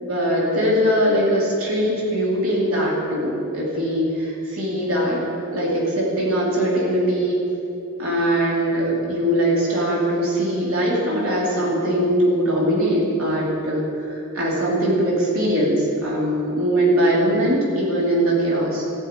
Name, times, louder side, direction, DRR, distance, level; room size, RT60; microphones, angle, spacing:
voice 1, 0.0-5.2 5.5-7.4 8.0-18.8, equal, 65° right, -4 dB, 2.8 m, -21 dB
15.0 x 5.7 x 8.8 m, 2.9 s
head